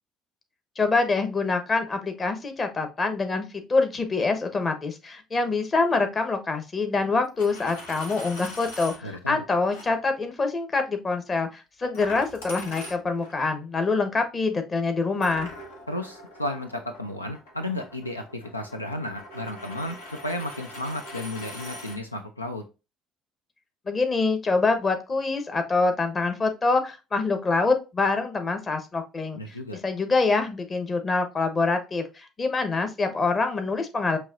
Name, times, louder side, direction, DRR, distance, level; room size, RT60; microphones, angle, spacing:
voice 1, 0.8-15.5 23.9-29.4 29.7-34.2, left 3 dB, 30° left, 7 dB, 1.0 m, -25 dB
Coin (dropping), 7.2-9.0 9.7-9.9 11.9-13.4 15.2-22.0, equal, 75° left, 1.0 m, -42 dB
voice 2, 9.0-9.4 15.9-22.6 29.3-29.8, left 1 dB, 90° left, 6 dB, 0.3 m, -33 dB
6.3 x 2.9 x 2.5 m, 0.28 s
figure-of-eight pair, 55°, 0 cm